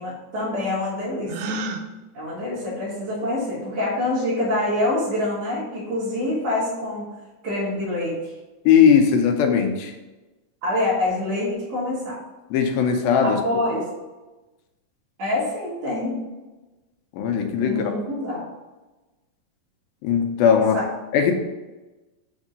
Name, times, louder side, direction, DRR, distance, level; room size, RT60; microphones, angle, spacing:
voice 1, 0.0-1.3 2.1-7.0 7.4-8.3 10.6-12.2 13.2-13.9 15.2-16.2 17.6-18.5 20.7-20.9, left 1 dB, 50° right, -9 dB, 2.5 m, -26 dB
Gasp, 1.3-1.8, right 2 dB, 90° right, 1.7 m, -29 dB
voice 2, 8.7-9.9 12.5-13.4 17.1-18.0 20.0-20.8 21.1-21.3, left 7 dB, 90° left, 5 dB, 2.5 m, -18 dB
6.4 x 3.7 x 5.1 m, 1.1 s
omnidirectional pair, 4.1 m